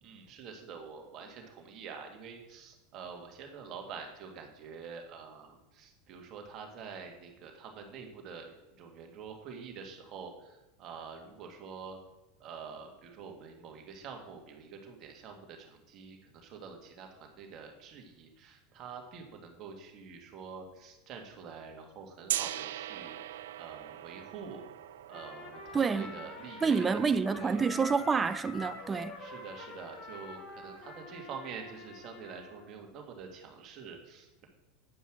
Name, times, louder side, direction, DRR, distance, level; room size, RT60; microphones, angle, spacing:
voice 1, 0.0-12.0 12.4-23.2 23.6-27.6 29.2-34.5, right 6 dB, 45° right, 2.0 m, -46 dB
Gong, 22.3-28.2, right 12 dB, 85° right, 0.4 m, -41 dB
Trumpet, 25.1-32.7, left 2 dB, 45° left, 2.5 m, -46 dB
voice 2, 25.7-26.1 26.6-29.2, right 5 dB, 20° right, 0.6 m, -28 dB
9.6 x 5.5 x 6.1 m
supercardioid pair, 105°, 0 cm